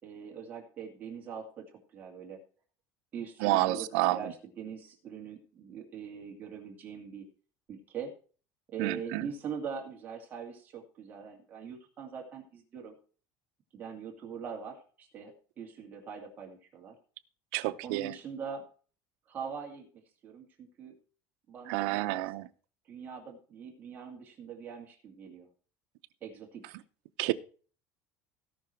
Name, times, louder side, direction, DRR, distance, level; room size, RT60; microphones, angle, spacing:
voice 1, 0.0-2.4 3.1-7.2 7.7-8.1 8.7-12.9 13.7-16.9 17.8-18.7 19.3-19.9 20.2-20.9 21.5-22.3 22.9-25.5 26.2-26.7, right 6 dB, 25° right, 2.3 m, -42 dB
voice 2, 3.4-4.3 8.8-9.3 17.5-18.1 21.7-22.4 27.2-27.3, right 17 dB, 80° right, 0.8 m, -29 dB
17.0 x 6.0 x 4.5 m
cardioid pair, 175°, 7 cm